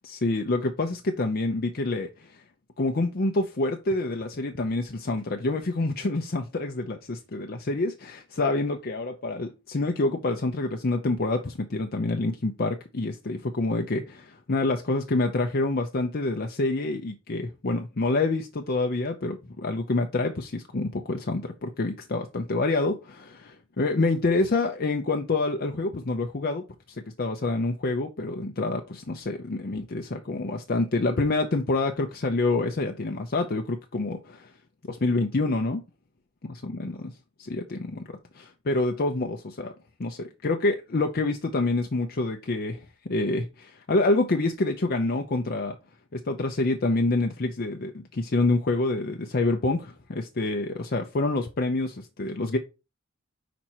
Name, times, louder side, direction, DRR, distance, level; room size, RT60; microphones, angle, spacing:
voice 1, 0.0-2.4 2.8-26.6 27.2-34.5 34.9-35.8 36.6-36.9 37.4-38.0 38.3-39.7 40.0-45.8 46.1-52.6, left 2 dB, 50° left, 0.6 m, -27 dB
5.2 x 4.3 x 4.4 m
head